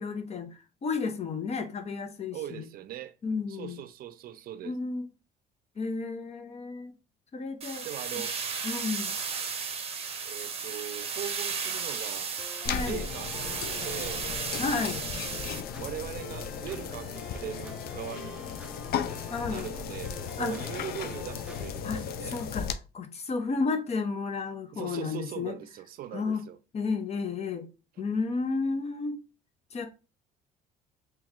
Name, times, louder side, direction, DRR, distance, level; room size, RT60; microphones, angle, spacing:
voice 1, 0.0-2.6 3.2-3.8 4.6-5.1 5.8-6.9 7.3-7.9 8.6-9.2 12.6-13.0 14.6-15.1 19.3-19.7 20.4-20.6 21.8-22.7 22.9-25.5 26.1-26.4 26.7-27.7 28.0-29.2 29.7-29.9, left 4 dB, 40° left, 0.8 m, -32 dB
voice 2, 2.3-3.1 3.5-4.8 7.8-8.4 10.2-12.3 12.8-14.3 15.8-18.4 19.5-22.4 24.7-26.6 28.0-28.1, right 12 dB, 60° right, 0.5 m, -40 dB
sound 1, 7.6-15.6, right 5 dB, 35° right, 0.8 m, -35 dB
sound 2, 12.4-21.6, right 1 dB, 5° right, 0.5 m, -48 dB
sound 3, 12.6-22.7, left 8 dB, 65° left, 0.5 m, -36 dB
3.0 x 3.0 x 3.6 m
cardioid pair, 110°, 17 cm